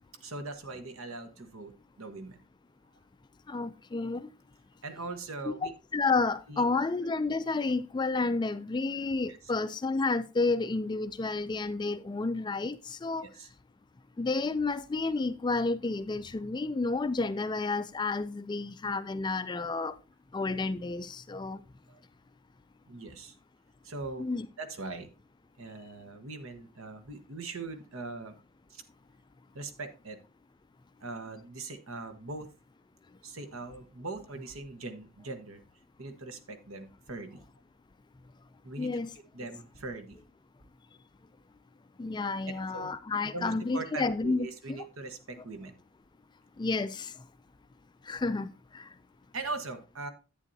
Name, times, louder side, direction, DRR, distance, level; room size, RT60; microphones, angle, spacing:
voice 1, 0.2-2.4 4.8-5.7 6.5-6.9 9.3-9.4 13.3-13.5 21.9-22.0 22.9-23.4 23.8-24.3 24.6-25.1 25.6-28.4 28.7-28.8 29.5-30.2 31.0-32.5 33.2-35.6 36.0-37.4 38.6-38.9 39.3-40.2 42.4-42.9 43.3-45.8 49.3-50.1, right 3 dB, 70° right, 1.2 m, -41 dB
voice 2, 3.5-4.3 5.5-13.3 14.2-19.9 20.3-21.6 24.2-24.5 38.8-39.1 42.0-44.8 46.6-47.1 48.1-48.9, left 3 dB, 20° left, 0.3 m, -31 dB
11.0 x 8.4 x 2.7 m
head